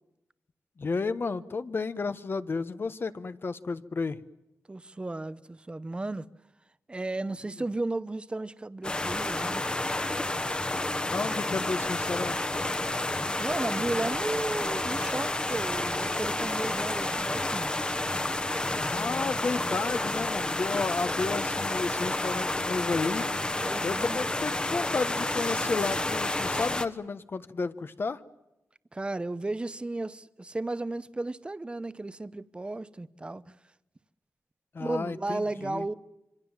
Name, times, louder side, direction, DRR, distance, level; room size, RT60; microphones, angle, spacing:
voice 1, 0.8-4.2 11.1-12.5 18.9-23.3 23.8-28.2 34.7-35.8, left 4 dB, 45° left, 1.2 m, -32 dB
voice 2, 4.7-6.3 6.9-9.6 13.4-17.7 23.6-24.2 28.9-33.5 34.8-35.9, right 2 dB, 20° right, 0.9 m, -34 dB
sound 1, 8.8-26.9, left 2 dB, 20° left, 1.2 m, -30 dB
26.5 x 25.0 x 7.4 m
wide cardioid pair, 120°, 5 cm